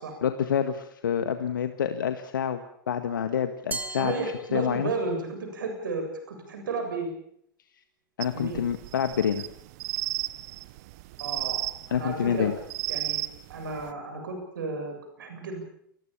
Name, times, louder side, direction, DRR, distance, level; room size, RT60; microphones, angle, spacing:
voice 1, 0.2-2.6 2.9-4.1 4.5-4.9 8.2-9.4 11.9-12.5, left 8 dB, 70° left, 8 dB, 1.7 m, -27 dB
Glass, 3.7-5.1, right 3 dB, 15° right, 3.2 m, -38 dB
voice 2, 3.9-7.1 8.3-8.6 11.2-12.5 12.9-13.2 13.5-15.6, right 3 dB, 70° right, 5 dB, 7.6 m, -33 dB
sound 1, 8.2-13.9, right 18 dB, 50° right, 1.1 m, -34 dB
29.0 x 21.0 x 7.1 m, 0.69 s
figure-of-eight pair, 90°, 11 cm